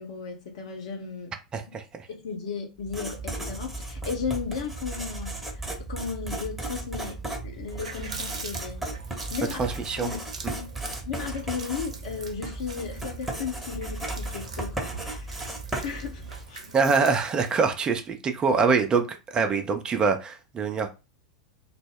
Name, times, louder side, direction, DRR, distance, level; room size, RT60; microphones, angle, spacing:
voice 1, 0.0-1.3 2.1-5.4 5.8-8.8 9.3-9.6 10.0-10.2 10.5-10.6 11.0-15.4 15.8-16.2 16.5-16.6, left 6 dB, 60° left, 0.8 m, -35 dB
voice 2, 1.5-2.1 9.6-10.1 10.4-10.5 16.7-20.9, right 5 dB, 25° right, 0.4 m, -24 dB
Writing, 2.8-16.6, right 2 dB, 5° right, 0.9 m, -35 dB
Water tap faucet, 7.5-17.6, right 3 dB, 70° right, 0.6 m, -43 dB
2.0 x 2.0 x 3.5 m
figure-of-eight pair, 90°, 4 cm